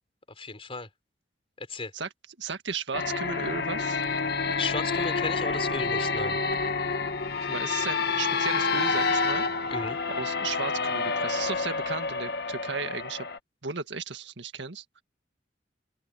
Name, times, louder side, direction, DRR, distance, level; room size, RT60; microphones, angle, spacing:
voice 1, 0.4-0.9 1.6-1.9 4.6-6.4 9.7-10.0, left 3 dB, 35° left, 3.5 m, -34 dB
voice 2, 2.4-4.0 7.4-9.5 10.1-13.3 13.6-15.0, right 5 dB, 80° right, 1.8 m, -35 dB
sound 1, 2.9-13.4, left 4 dB, 65° left, 1.6 m, -28 dB
open air
head